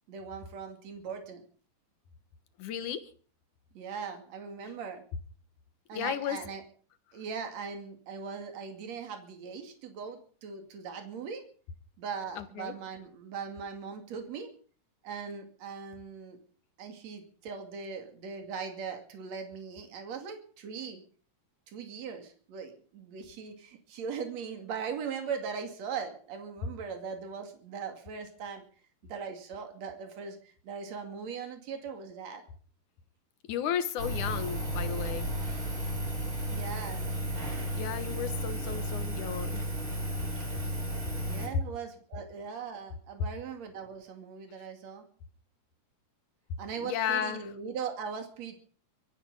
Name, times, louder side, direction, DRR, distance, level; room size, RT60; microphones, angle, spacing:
voice 1, 0.1-1.4 3.7-5.0 5.9-6.6 7.1-11.5 12.0-14.5 15.0-16.4 16.8-21.0 21.7-28.6 29.0-32.4 36.5-37.1 41.3-45.0 46.6-48.6, right 6 dB, 60° right, 5 dB, 3.6 m, -40 dB
voice 2, 2.6-3.1 5.9-6.4 12.4-12.7 33.5-35.3 37.7-39.6 46.8-47.5, left 9 dB, 75° left, 11 dB, 2.7 m, -34 dB
Engine, 34.0-41.5, right 1 dB, 40° right, 5.0 m, -33 dB
24.5 x 10.5 x 5.5 m, 0.43 s
omnidirectional pair, 3.5 m